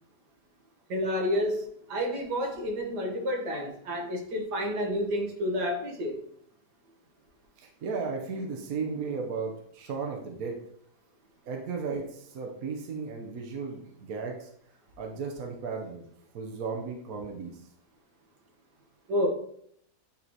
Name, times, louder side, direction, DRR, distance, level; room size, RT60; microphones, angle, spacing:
voice 1, 0.9-6.2 19.1-19.3, equal, 80° right, 1 dB, 1.8 m, -30 dB
voice 2, 7.6-10.6 11.5-14.5 15.0-16.1 16.3-17.5, right 5 dB, 65° right, 2 dB, 1.3 m, -35 dB
8.9 x 3.1 x 4.0 m, 0.67 s
omnidirectional pair, 1.8 m